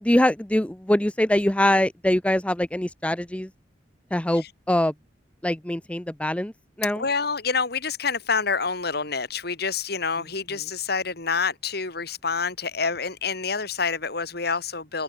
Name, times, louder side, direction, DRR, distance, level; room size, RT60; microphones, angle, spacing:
voice 1, 0.0-3.5 4.1-4.9 5.4-6.5 6.8-7.0, left 1 dB, 5° left, 0.6 m, -23 dB
voice 2, 6.9-15.0, left 5 dB, 60° left, 3.3 m, -27 dB
open air
head